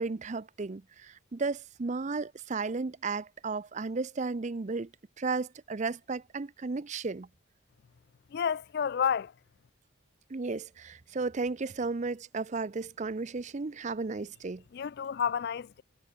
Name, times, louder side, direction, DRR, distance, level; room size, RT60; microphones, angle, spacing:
voice 1, 0.0-4.9 5.2-7.3 10.3-14.6, right 4 dB, 35° right, 0.5 m, -34 dB
voice 2, 8.3-9.3 14.7-15.8, left 7 dB, 50° left, 0.3 m, -30 dB
head